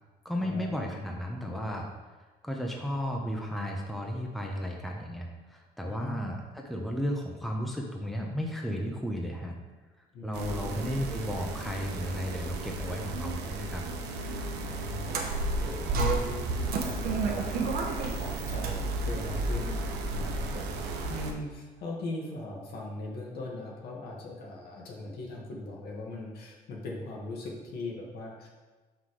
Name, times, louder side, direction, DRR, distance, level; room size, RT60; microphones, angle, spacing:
voice 1, 0.2-1.9 2.4-9.6 10.2-13.8, equal, ahead, 0 dB, 1.0 m, -34 dB
voice 2, 5.9-6.3 10.1-10.8 14.6-19.8 20.1-28.5, left 2 dB, 70° left, -2 dB, 2.0 m, -40 dB
sound 1, 10.3-21.3, right 2 dB, 90° right, 0.9 m, -35 dB
sound 2, 15.0-20.3, right 3 dB, 60° right, 1.1 m, -32 dB
5.8 x 5.8 x 4.9 m, 1.3 s
cardioid pair, 110°, 17 cm